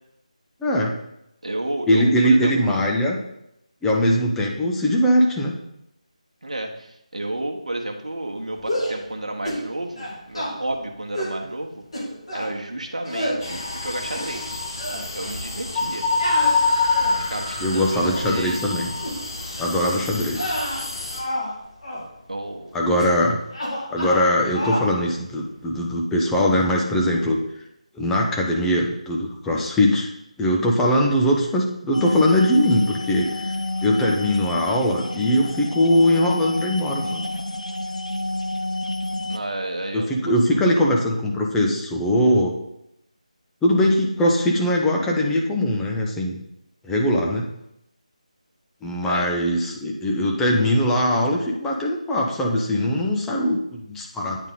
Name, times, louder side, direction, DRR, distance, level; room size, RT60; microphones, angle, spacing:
voice 1, 0.6-0.9 1.9-3.2 3.8-5.6 17.6-18.9 19.6-20.6 22.7-23.4 23.9-27.4 27.9-30.1 30.4-33.5 33.8-37.3 39.9-42.5 43.6-46.4 46.8-47.4 48.8-54.4, equal, 5° left, -1 dB, 0.4 m, -21 dB
voice 2, 1.4-2.8 6.4-11.8 12.3-14.5 15.1-16.0 17.3-18.8 22.3-22.7 39.3-41.0 49.0-49.3, right 1 dB, 60° right, 2 dB, 1.1 m, -31 dB
sound 1, 8.6-9.0 9.4-9.7 10.0-10.5 11.1-11.4 11.9-12.5 13.1-13.4 13.9-14.5 14.8-15.0 16.2-17.3 17.8-18.3 19.0-19.2 19.6-19.8 20.3-21.5 21.8-22.1 23.0-23.3 23.5-24.3 24.5-24.9, equal, 50° left, 2.3 m, -29 dB
sound 2, 13.4-21.2, left 3 dB, 35° left, 1.0 m, -26 dB
sound 3, 31.9-39.4, left 1 dB, 65° left, 0.6 m, -29 dB
8.9 x 3.9 x 3.9 m, 0.80 s
figure-of-eight pair, 155°, 4 cm